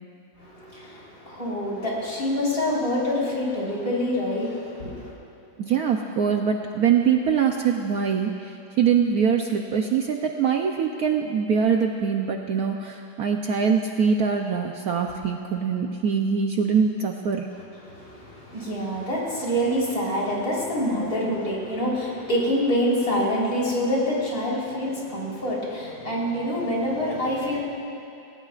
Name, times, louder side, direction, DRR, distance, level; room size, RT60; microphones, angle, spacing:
voice 1, 0.4-5.1 17.8-27.6, equal, 50° left, -5 dB, 4.4 m, -26 dB
voice 2, 5.6-17.5, right 6 dB, 65° right, 3 dB, 1.0 m, -23 dB
27.5 x 18.0 x 2.4 m, 2.6 s
omnidirectional pair, 2.0 m